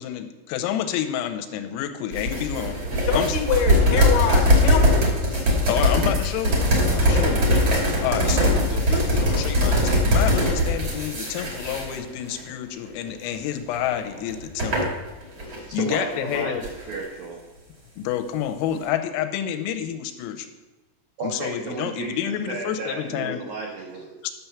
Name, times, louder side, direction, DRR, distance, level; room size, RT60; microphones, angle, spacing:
voice 1, 0.0-2.8 3.1-3.4 5.7-7.5 8.0-14.9 15.7-16.6 18.0-20.5 21.2-23.4 24.2-24.3, left 10 dB, 85° left, 7 dB, 3.4 m, -29 dB
sound 1, 2.1-12.4 12.8-13.1 13.7-15.6 15.9-17.0, equal, 65° right, 1.2 m, -21 dB
voice 2, 3.1-5.1, left 6 dB, 70° left, 2 dB, 3.2 m, -24 dB
voice 3, 15.4-17.4 21.2-24.2, right 3 dB, 85° right, -1 dB, 2.0 m, -33 dB
9.4 x 5.8 x 6.9 m, 1.1 s
omnidirectional pair, 6.0 m